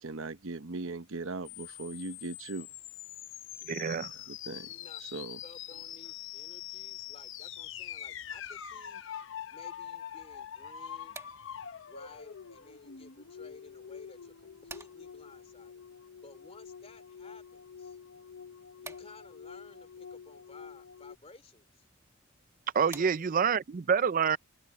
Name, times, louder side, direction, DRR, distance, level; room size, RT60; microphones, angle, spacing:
voice 1, 0.0-2.7 4.1-4.7 5.0-5.4, right 3 dB, 75° right, 0.9 m, -39 dB
sound 1, 1.4-21.2, left 9 dB, 65° left, 0.7 m, -45 dB
voice 2, 3.7-4.1 22.7-24.4, right 6 dB, 40° right, 0.5 m, -27 dB
voice 3, 4.6-5.0 5.4-9.0 9.5-11.2 11.9-15.8 16.2-18.0 18.8-21.8 22.9-23.5, left 3 dB, 30° left, 3.0 m, -55 dB
sound 2, 10.8-23.6, right 3 dB, 15° right, 1.7 m, -55 dB
open air
head